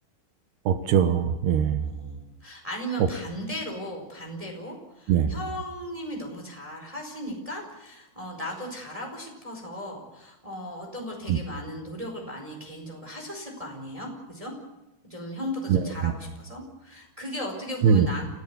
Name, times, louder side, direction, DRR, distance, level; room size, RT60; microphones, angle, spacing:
voice 1, 0.7-1.8 5.1-5.3 11.3-11.4 15.7-16.1 17.8-18.1, right 7 dB, 90° right, 9 dB, 3.3 m, -21 dB
voice 2, 1.8-14.5 15.0-18.3, equal, 10° right, 1 dB, 4.4 m, -37 dB
29.5 x 16.0 x 7.1 m, 0.96 s
omnidirectional pair, 4.5 m